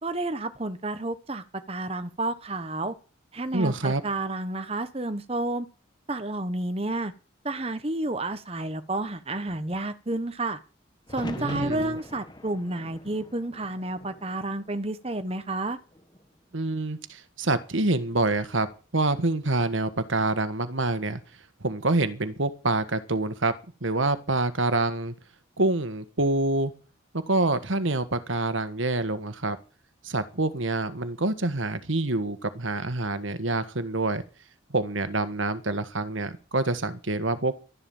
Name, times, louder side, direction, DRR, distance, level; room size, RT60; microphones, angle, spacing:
voice 1, 0.0-2.9 3.3-5.7 6.1-7.1 7.4-10.6 11.1-15.8, right 2 dB, 30° right, 1.2 m, -30 dB
voice 2, 3.5-4.0 11.4-12.0 16.5-18.7 18.9-21.2 21.6-23.5 23.8-25.1 25.6-26.7 27.3-29.6 30.0-34.2 34.7-37.6, right 2 dB, 75° right, 1.5 m, -26 dB
sound 1, 11.1-15.1 15.5-16.2 18.1-18.6, left 1 dB, 20° left, 1.6 m, -42 dB
13.0 x 11.0 x 7.2 m
head